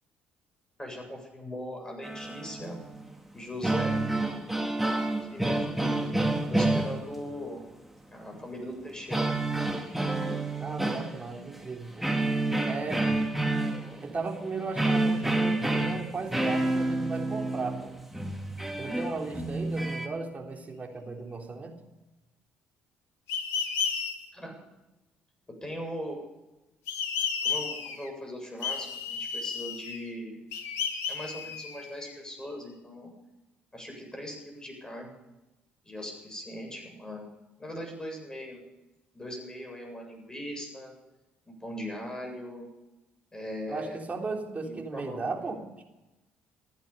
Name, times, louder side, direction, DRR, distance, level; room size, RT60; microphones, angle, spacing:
voice 1, 0.8-2.8 3.3-4.0 4.8-7.6 8.1-9.7 24.3-24.6 25.6-26.2 27.4-30.4 31.1-33.1 33.7-35.1 35.8-37.2 37.6-38.6 39.1-40.9 41.5-42.7 43.3-44.0 44.6-45.2, equal, 15° left, 2 dB, 7.8 m, -40 dB
sound 1, 2.0-3.2 3.4-7.5 9.1-11.6 12.0-20.1, right 2 dB, 5° right, 2.3 m, -29 dB
voice 2, 10.6-12.1 12.6-13.1 14.0-17.9 18.8-21.8 43.7-45.6, right 3 dB, 30° right, 1 dB, 3.6 m, -36 dB
sound 2, 23.3-24.1 26.9-28.1 28.6-30.1 30.5-32.1, left 6 dB, 65° left, 1.8 m, -32 dB
27.5 x 9.5 x 5.4 m, 1.0 s
figure-of-eight pair, 45°, 5 cm